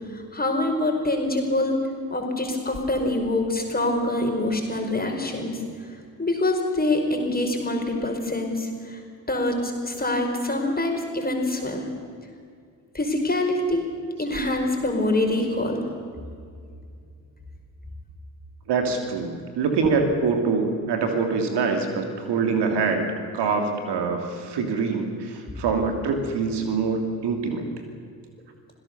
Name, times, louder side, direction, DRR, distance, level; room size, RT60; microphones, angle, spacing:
voice 1, 0.1-1.8 2.1-5.6 6.2-9.0 9.3-11.9 12.9-13.9 14.2-15.8, left 1 dB, 20° left, 3 dB, 5.3 m, -25 dB
voice 2, 18.7-27.7, right 4 dB, 60° right, 5 dB, 2.9 m, -25 dB
26.5 x 17.0 x 6.9 m, 2.2 s
figure-of-eight pair, 40°, 46 cm